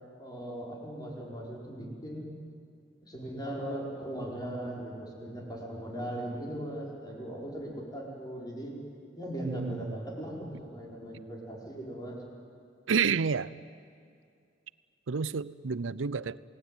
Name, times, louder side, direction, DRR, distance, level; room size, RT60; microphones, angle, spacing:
voice 1, 0.2-2.2 3.0-8.7 9.1-12.2, right 1 dB, 20° left, 4.9 m, -39 dB
voice 2, 9.4-10.0 12.9-13.5 15.1-16.4, right 5 dB, 85° right, 0.6 m, -29 dB
28.0 x 18.5 x 9.4 m
head